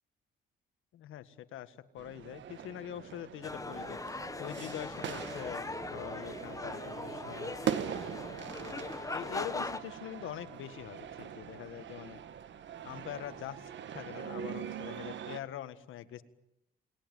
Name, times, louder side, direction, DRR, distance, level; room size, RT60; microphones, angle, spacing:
voice 1, 0.9-7.8 8.6-12.2 12.8-16.2, left 12 dB, 85° left, 11 dB, 1.8 m, -44 dB
sound 1, 2.0-15.4, right 9 dB, 65° right, 1.8 m, -42 dB
sound 2, 3.4-9.8, left 3 dB, 15° left, 1.5 m, -40 dB
29.0 x 21.0 x 9.3 m, 0.82 s
cardioid pair, 90°, 20 cm